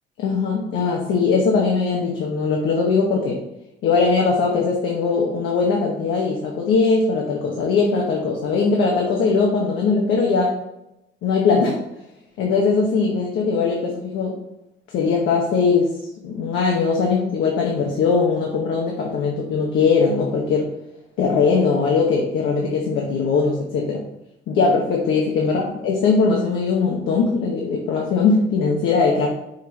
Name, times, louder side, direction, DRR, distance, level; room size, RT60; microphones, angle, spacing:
voice 1, 0.2-3.4 3.8-10.5 11.2-11.8 12.4-14.4 14.9-15.9 16.2-20.7 21.2-24.0 24.5-29.3, left 4 dB, 90° left, -1 dB, 1.0 m, -20 dB
5.4 x 4.7 x 4.0 m, 0.89 s
cardioid pair, 90°, 20 cm